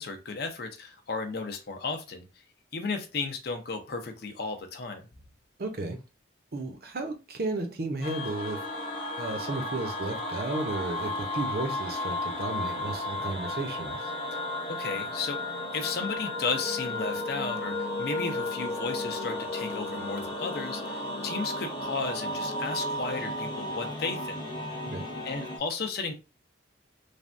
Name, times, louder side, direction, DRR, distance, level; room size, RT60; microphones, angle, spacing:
voice 1, 0.0-2.3 2.7-5.0 14.3-14.4 14.7-24.4 25.2-26.1, left 4 dB, 55° left, 5 dB, 0.5 m, -34 dB
voice 2, 5.6-6.0 6.5-8.6 9.2-14.1 24.9-25.1, right 2 dB, 50° right, 5 dB, 0.6 m, -33 dB
sound 1, 8.0-25.6, left 1 dB, 25° left, 0.8 m, -34 dB
3.3 x 2.2 x 2.6 m, 0.29 s
head